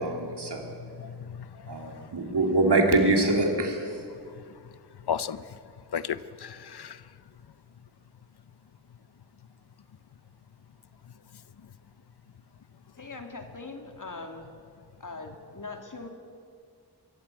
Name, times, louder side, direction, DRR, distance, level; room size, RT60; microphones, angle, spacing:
voice 1, 0.0-0.7 1.7-3.9, right 2 dB, 80° right, 2 dB, 3.0 m, -24 dB
voice 2, 0.8-1.7 5.1-5.4 5.9-7.0, left 8 dB, 70° left, 15 dB, 0.7 m, -34 dB
voice 3, 13.0-14.5 15.0-16.1, left 3 dB, 50° left, 5 dB, 2.5 m, -41 dB
23.5 x 14.0 x 9.1 m, 2.3 s
wide cardioid pair, 80°, 40 cm